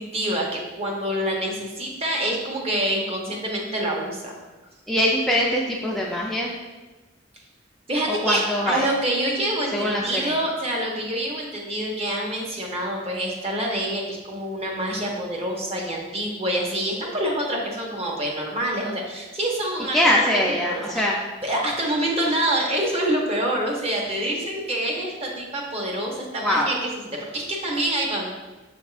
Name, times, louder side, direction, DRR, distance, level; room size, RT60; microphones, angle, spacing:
voice 1, 0.0-4.4 7.9-20.2 20.6-21.1 21.4-26.9 27.2-28.3, right 1 dB, 35° right, -1 dB, 0.8 m, -26 dB
voice 2, 4.9-6.5 8.1-8.9 9.7-10.3 19.9-21.2 26.4-26.7, left 1 dB, ahead, -3 dB, 0.3 m, -22 dB
6.3 x 3.5 x 2.4 m, 1.2 s
head